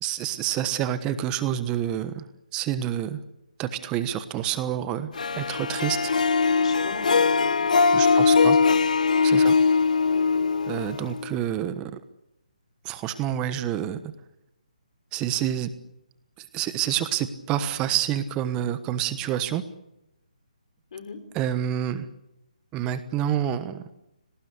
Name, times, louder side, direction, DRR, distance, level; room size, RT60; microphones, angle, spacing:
voice 1, 0.0-2.3 2.5-3.2 3.6-5.1 5.4-6.1 7.9-8.6 9.2-9.5 10.7-12.0 12.8-14.1 15.1-15.7 16.5-19.6 21.3-22.1 22.7-23.8, right 11 dB, 20° right, 11 dB, 1.2 m, -28 dB
Harp, 5.2-11.4, left 5 dB, 70° left, 1.2 m, -21 dB
voice 2, 6.5-7.6 7.9-8.8 9.2-9.5 10.1-10.5 20.9-21.2, left 5 dB, 55° left, 10 dB, 4.4 m, -39 dB
29.0 x 19.0 x 8.2 m, 0.87 s
hypercardioid pair, 150°, 4 cm